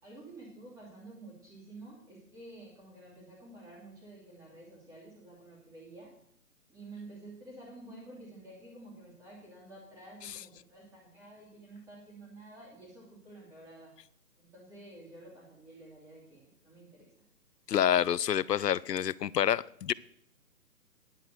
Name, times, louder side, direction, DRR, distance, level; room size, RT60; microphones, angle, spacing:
voice 1, 0.0-6.1 6.7-13.9 14.4-17.1, right 2 dB, 5° right, -4 dB, 2.8 m, -50 dB
voice 2, 17.7-19.9, left 10 dB, 75° left, 22 dB, 0.6 m, -27 dB
10.5 x 7.9 x 6.6 m, 0.69 s
hypercardioid pair, 160°, 49 cm